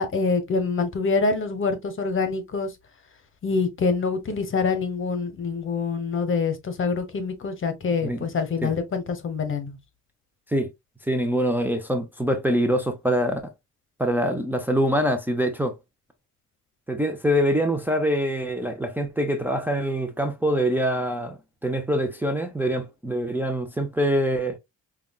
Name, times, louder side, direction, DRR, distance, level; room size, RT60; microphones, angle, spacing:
voice 1, 0.0-2.7 3.4-9.8, left 4 dB, 40° left, 1.0 m, -25 dB
voice 2, 11.0-13.4 14.0-15.8 16.9-24.6, equal, 5° right, 0.6 m, -24 dB
5.0 x 2.4 x 2.4 m
cardioid pair, 90°, 30 cm